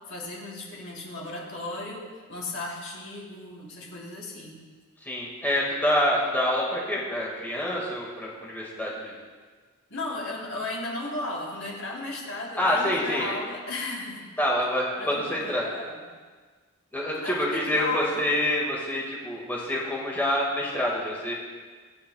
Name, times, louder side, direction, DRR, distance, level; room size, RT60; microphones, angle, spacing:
voice 1, 0.1-4.6 9.9-14.3 15.0-16.1 17.2-18.3, left 2 dB, 65° left, -3 dB, 3.4 m, -35 dB
voice 2, 5.0-9.1 12.6-13.3 14.4-15.6 16.9-21.3, left 1 dB, 10° left, -4 dB, 1.9 m, -27 dB
25.5 x 9.5 x 2.4 m, 1.5 s
head